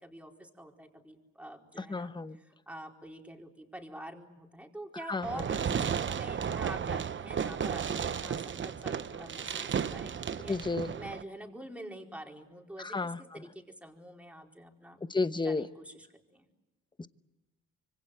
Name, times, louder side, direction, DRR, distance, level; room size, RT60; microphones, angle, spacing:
voice 1, 0.0-2.1 2.4-10.1 10.4-10.6 10.9-15.0 15.4-16.5, right 1 dB, 5° right, 1 dB, 4.4 m, -46 dB
voice 2, 1.8-2.4 5.1-5.3 10.5-10.9 12.8-13.4 15.1-15.6 17.0-17.1, left 3 dB, 15° left, 12 dB, 1.0 m, -32 dB
Fireworks, 5.2-11.2, right 7 dB, 40° right, 0.9 m, -34 dB
26.0 x 24.5 x 7.9 m, 1.0 s
cardioid pair, 90°, 30 cm